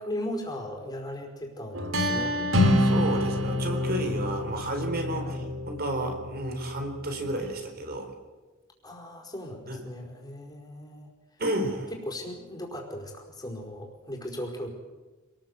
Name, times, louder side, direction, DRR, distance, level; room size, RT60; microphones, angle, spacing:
voice 1, 0.0-2.4 5.2-5.4 8.8-11.1 12.1-14.7, left 1 dB, 20° left, 1 dB, 5.0 m, -37 dB
sound 1, 1.7-7.4, left 1 dB, 80° right, 3.1 m, -27 dB
voice 2, 2.8-8.1 9.7-9.8 11.4-11.9, right 1 dB, 50° right, 5 dB, 4.1 m, -31 dB
27.0 x 20.0 x 8.2 m, 1.3 s
head